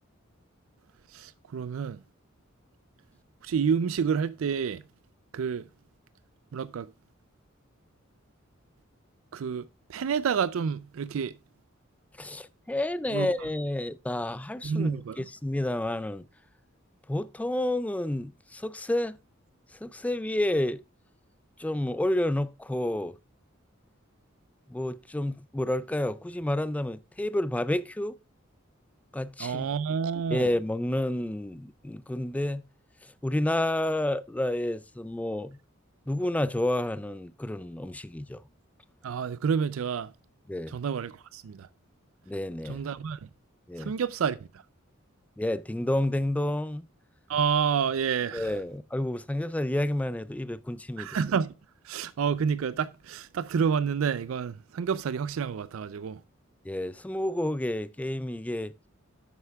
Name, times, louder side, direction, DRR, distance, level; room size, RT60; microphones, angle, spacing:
voice 1, 1.1-2.0 3.4-4.8 5.3-5.6 6.5-6.9 9.3-9.6 9.9-11.3 13.1-13.3 14.6-15.3 29.4-30.5 39.0-40.1 40.7-41.7 42.6-43.2 43.8-44.4 47.3-48.5 51.0-51.5 51.8-56.2, right 6 dB, 85° right, 0.4 m, -29 dB
voice 2, 12.2-16.2 17.1-19.2 19.8-20.8 21.6-23.2 24.7-28.2 29.1-29.7 30.3-32.6 33.2-35.6 36.1-38.4 40.5-40.7 42.3-42.8 43.7-43.9 45.4-46.9 48.3-51.1 56.7-58.7, left 1 dB, 5° left, 0.3 m, -30 dB
10.0 x 7.9 x 2.3 m
head